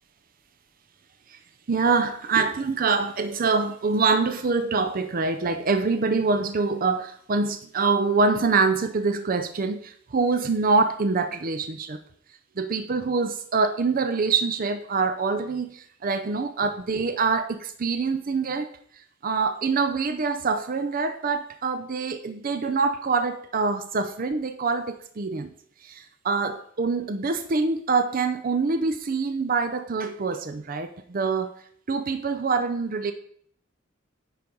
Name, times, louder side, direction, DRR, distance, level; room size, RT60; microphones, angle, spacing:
voice 1, 1.7-12.0 12.6-18.7 19.2-25.5 25.8-31.6 31.9-33.1, right 4 dB, 45° right, 0.6 m, -25 dB
9.2 x 5.0 x 5.3 m
head